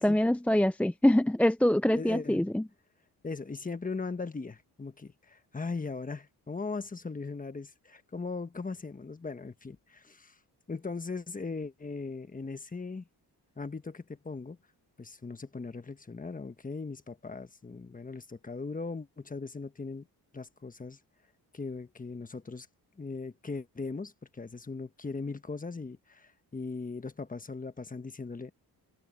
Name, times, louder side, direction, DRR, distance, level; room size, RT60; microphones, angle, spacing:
voice 1, 0.0-2.6, left 1 dB, 5° left, 0.4 m, -24 dB
voice 2, 1.9-2.4 3.2-10.3 10.7-13.1 13.6-14.6 15.0-20.1 20.3-21.0 21.5-22.7 23.0-28.5, left 4 dB, 20° left, 1.2 m, -39 dB
cardioid pair, 105°, 40 cm